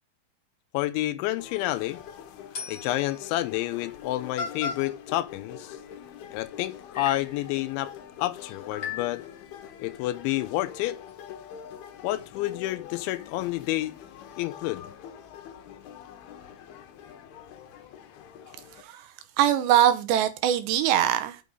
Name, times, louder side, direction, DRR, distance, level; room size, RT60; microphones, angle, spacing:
voice 1, 0.7-2.0 2.7-5.8 6.3-7.9 8.2-9.2 9.8-11.0 12.0-13.9 14.4-14.9, left 16 dB, 85° left, 3.0 m, -29 dB
sound 1, 1.4-18.8, left 9 dB, 70° left, 2.6 m, -45 dB
sound 2, 1.7-2.0 2.5-3.1 3.9-4.0 4.4-4.9 6.4-6.5 6.9-7.4 8.7-9.4, left 5 dB, 35° left, 1.8 m, -36 dB
voice 2, 18.8-19.1 19.4-21.4, right 11 dB, 80° right, 2.8 m, -22 dB
6.4 x 6.2 x 5.3 m
omnidirectional pair, 5.4 m